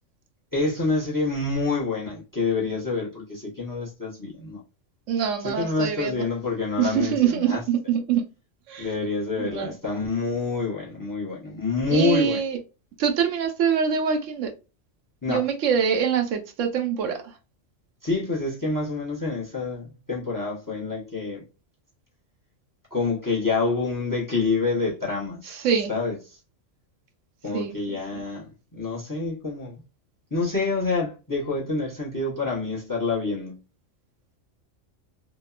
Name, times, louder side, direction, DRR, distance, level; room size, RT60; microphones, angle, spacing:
voice 1, 0.5-4.6 5.4-7.6 8.8-12.4 15.2-15.4 18.0-21.4 22.9-26.2 27.4-29.8 30.3-33.6, left 3 dB, 20° left, 0.7 m, -27 dB
voice 2, 5.1-6.3 6.8-8.2 8.7-8.9 9.4-9.7 11.9-12.6 13.0-14.5 15.3-17.2 25.5-25.9 27.5-28.0, right 7 dB, 80° right, 0.9 m, -24 dB
2.9 x 2.1 x 2.3 m
omnidirectional pair, 1.3 m